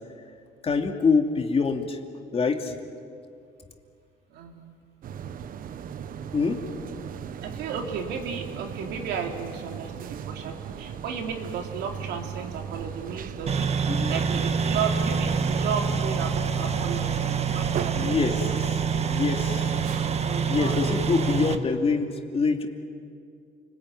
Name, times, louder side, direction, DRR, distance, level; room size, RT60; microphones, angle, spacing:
voice 1, 0.6-2.0 2.3-2.7 6.3-7.2 13.9-14.1 17.9-19.7 20.5-22.7, left 4 dB, 35° left, 4 dB, 2.7 m, -26 dB
voice 2, 4.3-4.7 7.4-19.0 20.2-20.7, right 6 dB, 80° right, 3 dB, 3.3 m, -34 dB
sound 1, 5.0-20.2, right 8 dB, 55° right, 1.1 m, -37 dB
sound 2, 13.5-21.6, right 6 dB, 40° right, 1.6 m, -26 dB
29.0 x 20.5 x 9.5 m, 2.4 s
cardioid pair, 110°, 17 cm